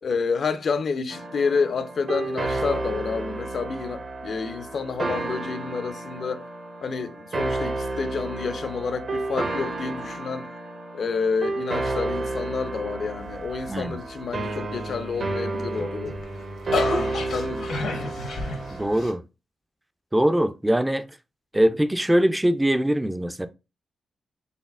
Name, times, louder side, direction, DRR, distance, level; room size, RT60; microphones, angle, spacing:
voice 1, 0.0-6.5 6.8-10.5 10.9-16.2 17.3-18.2, left 5 dB, 60° left, 0.4 m, -29 dB
sound 1, 1.1-19.1, right 2 dB, 50° right, 0.8 m, -31 dB
sound 2, 15.6-19.1, left 3 dB, 85° left, 0.9 m, -30 dB
voice 2, 18.7-19.2 20.1-21.1 21.5-23.5, right 1 dB, 10° right, 0.4 m, -22 dB
4.1 x 3.3 x 2.4 m
cardioid pair, 65°, 0 cm